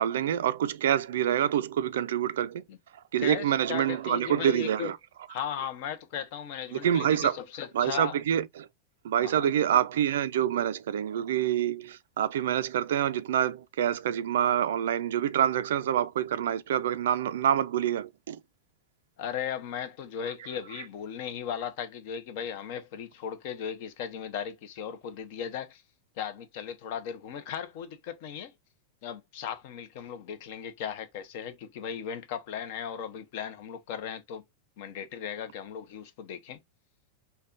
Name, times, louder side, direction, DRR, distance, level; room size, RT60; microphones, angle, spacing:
voice 1, 0.0-2.6 3.1-5.0 6.7-7.4 7.7-8.7 9.0-18.4, right 10 dB, 85° right, 0.4 m, -26 dB
voice 2, 3.2-4.9 5.3-8.2 9.2-9.5 19.2-25.8 26.2-28.5 29.0-34.4 34.8-36.6, left 8 dB, 45° left, 0.8 m, -37 dB
5.3 x 2.3 x 2.5 m
supercardioid pair, 175°, 0 cm